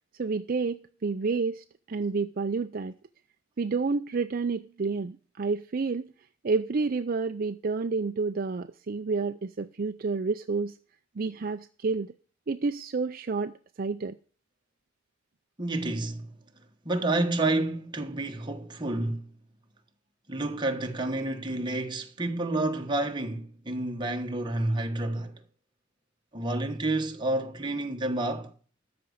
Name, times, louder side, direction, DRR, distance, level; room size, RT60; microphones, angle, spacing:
voice 1, 0.1-2.9 3.6-6.1 6.4-10.8 11.2-12.1 12.5-14.2, right 4 dB, 45° right, 0.5 m, -29 dB
voice 2, 15.6-16.3 16.8-19.2 20.3-25.4 26.3-28.5, right 2 dB, 25° right, 1.4 m, -29 dB
13.5 x 5.1 x 8.0 m
head